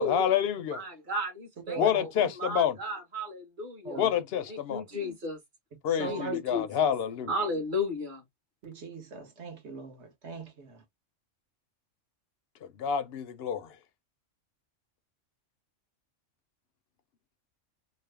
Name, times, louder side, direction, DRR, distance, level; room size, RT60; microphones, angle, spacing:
voice 1, 0.0-0.8 1.8-2.8 4.0-4.8 5.8-7.3 12.6-13.8, left 9 dB, 65° left, 0.7 m, -28 dB
voice 2, 0.7-2.1 2.3-4.0 4.5-5.4 6.0-6.9 7.3-8.2, left 1 dB, 40° right, 1.4 m, -34 dB
voice 3, 1.7-2.3 3.8-4.1 5.9-6.4 8.6-10.8, right 3 dB, 65° right, 1.3 m, -39 dB
3.3 x 2.0 x 3.2 m
omnidirectional pair, 1.3 m